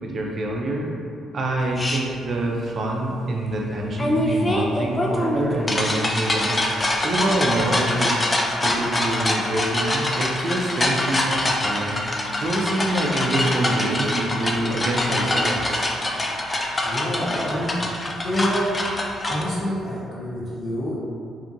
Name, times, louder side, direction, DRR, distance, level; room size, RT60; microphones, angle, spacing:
voice 1, 0.0-0.9 1.3-6.6 7.0-8.2 8.6-15.8, right 1 dB, 50° right, -1 dB, 0.4 m, -26 dB
sound 1, 1.8-2.0 4.0-19.4, left 1 dB, 25° left, 0.3 m, -24 dB
voice 2, 16.8-17.8 18.2-18.6 19.3-21.0, equal, 55° left, -7 dB, 0.9 m, -27 dB
2.7 x 2.4 x 2.6 m, 2.4 s
cardioid pair, 90°, 0 cm